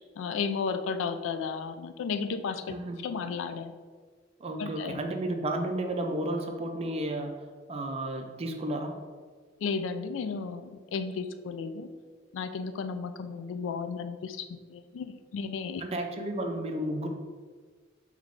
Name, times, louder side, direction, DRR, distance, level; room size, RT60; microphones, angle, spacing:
voice 1, 0.0-2.7 3.0-3.7 4.6-5.0 9.6-11.9 12.3-14.5 14.7-15.8, left 5 dB, 75° left, 10 dB, 0.3 m, -33 dB
voice 2, 2.7-3.0 4.4-7.4 7.7-9.0 15.8-17.1, right 1 dB, 30° right, 4 dB, 0.4 m, -32 dB
3.5 x 3.1 x 3.7 m, 1.5 s
head